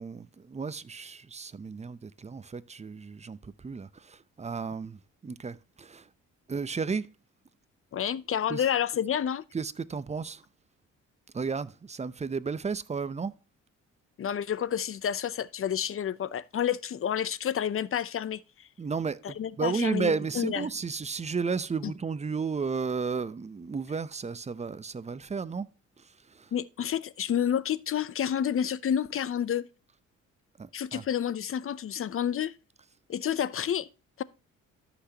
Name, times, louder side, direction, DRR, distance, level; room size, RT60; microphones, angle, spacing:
voice 1, 0.0-6.0 6.5-7.1 8.5-8.6 9.5-10.4 11.3-13.3 18.8-25.7 26.4-26.5 30.6-31.0, right 5 dB, 20° right, 0.7 m, -33 dB
voice 2, 7.9-9.4 14.2-18.7 19.2-20.7 21.8-21.9 26.5-29.7 30.7-32.5 33.1-33.9 34.2-34.3, left 9 dB, 45° left, 0.6 m, -29 dB
13.5 x 6.0 x 2.9 m
cardioid pair, 90°, 30 cm